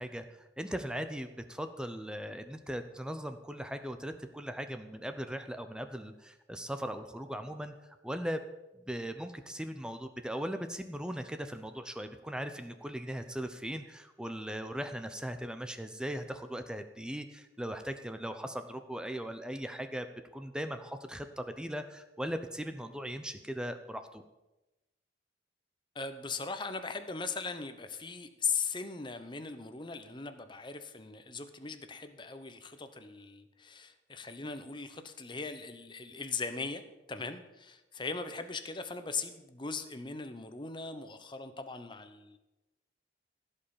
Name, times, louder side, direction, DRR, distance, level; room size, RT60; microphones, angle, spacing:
voice 1, 0.0-7.7 8.0-8.4 8.7-20.1 20.3-24.2, equal, 5° right, 8 dB, 0.7 m, -39 dB
voice 2, 25.9-36.8 37.1-42.4, left 4 dB, 25° left, 9 dB, 0.9 m, -39 dB
15.5 x 5.5 x 7.2 m, 1.0 s
head